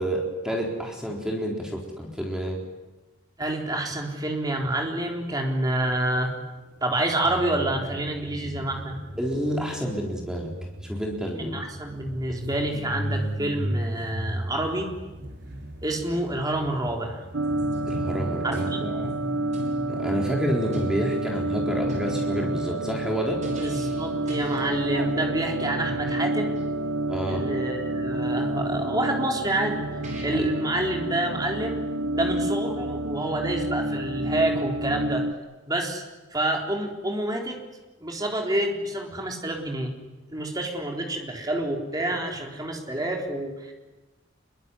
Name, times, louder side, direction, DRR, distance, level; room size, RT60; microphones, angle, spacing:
voice 1, 0.0-2.6 9.2-10.5 10.8-11.6 17.9-19.1 19.9-23.4 27.1-27.4 30.3-30.5, equal, 5° right, 0 dB, 4.0 m, -29 dB
voice 2, 3.4-6.3 6.8-8.9 11.5-14.9 15.8-17.2 18.4-18.8 23.6-26.5 27.3-29.8 30.2-31.8 32.1-35.3 35.7-36.0 36.3-37.6 38.0-39.9 40.3-43.7, right 1 dB, 20° right, 1 dB, 4.0 m, -28 dB
sound 1, 6.8-18.4 24.6-24.7 24.9-25.1, right 1 dB, 55° right, 5.1 m, -36 dB
sound 2, 17.3-35.3, right 2 dB, 70° right, 1.2 m, -29 dB
sound 3, 17.5-18.7 19.0-19.8 20.2-20.4 20.7-21.0 21.4-21.5 21.8-22.6 23.4-24.0 24.3-24.7 25.8-26.1 29.5-29.6 30.0-30.2, equal, 35° right, 6.5 m, -37 dB
26.5 x 23.0 x 9.9 m, 1.1 s
head